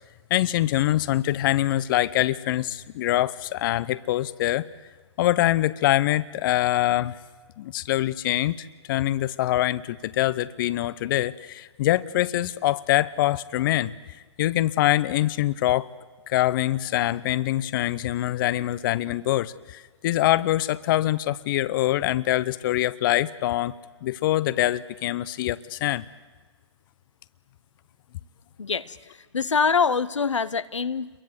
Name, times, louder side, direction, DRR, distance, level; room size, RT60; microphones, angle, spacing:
voice 1, 0.3-4.7 5.2-7.2 7.6-13.9 14.4-15.9 16.3-23.7 24.0-26.0, left 14 dB, 45° left, 17 dB, 0.8 m, -24 dB
voice 2, 28.6-29.0 29.3-31.1, left 5 dB, 85° left, 14 dB, 0.9 m, -24 dB
28.5 x 23.0 x 8.1 m, 1.3 s
hypercardioid pair, 125°, 15 cm